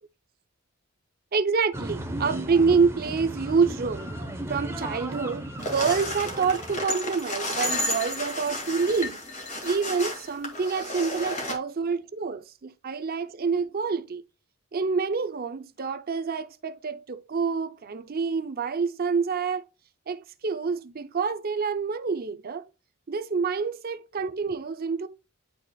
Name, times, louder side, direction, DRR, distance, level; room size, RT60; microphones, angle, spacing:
voice 1, 1.3-4.1 4.5-14.2 14.7-19.6 20.1-22.7 23.1-25.1, right 5 dB, 45° right, 0.5 m, -27 dB
sound 1, 1.7-6.9, right 1 dB, 10° right, 1.0 m, -35 dB
sound 2, 5.6-11.6, left 1 dB, 35° left, 2.1 m, -32 dB
10.5 x 4.1 x 2.3 m
head